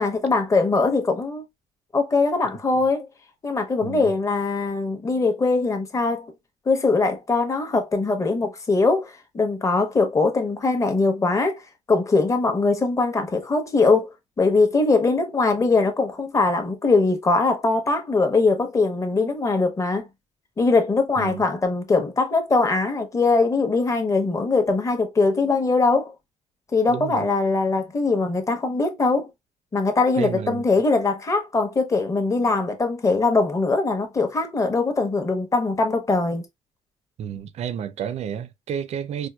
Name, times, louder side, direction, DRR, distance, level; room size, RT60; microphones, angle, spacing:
voice 1, 0.0-1.4 1.9-3.1 3.4-6.3 6.7-11.6 11.9-14.1 14.4-20.1 20.6-26.1 26.7-29.3 29.7-36.4, left 3 dB, 25° left, 0.8 m, -21 dB
voice 2, 26.9-27.2 30.2-30.6 37.2-39.3, right 8 dB, 55° right, 0.4 m, -31 dB
4.3 x 2.2 x 2.2 m
cardioid pair, 115°, 14 cm